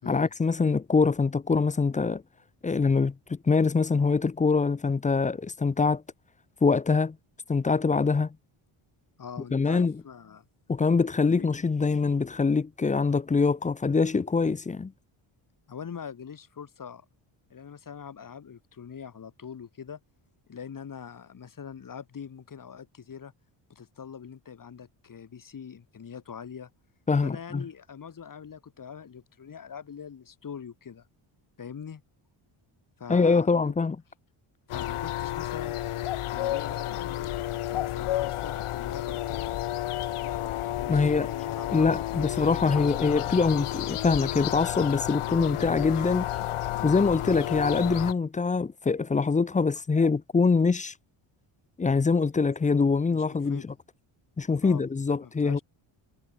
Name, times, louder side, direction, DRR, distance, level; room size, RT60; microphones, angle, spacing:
voice 1, 0.1-2.2 2.6-6.0 6.6-7.2 7.5-8.3 9.5-9.9 10.7-14.9 27.1-27.6 33.1-34.0 40.9-41.3 41.7-46.3 46.8-50.9 51.8-53.7 54.4-55.6, left 4 dB, 15° left, 0.6 m, -24 dB
voice 2, 9.2-10.4 11.2-11.5 15.7-17.0 17.5-20.0 20.5-23.3 23.7-26.7 27.2-31.1 31.6-32.0 33.0-33.7 34.7-35.8 36.3-39.5 40.2-42.1 42.3-43.2 53.1-53.7 54.6-55.6, left 7 dB, 40° left, 4.9 m, -43 dB
sound 1, 34.7-48.1, left 14 dB, 80° left, 2.1 m, -31 dB
cardioid pair, 135°, 50 cm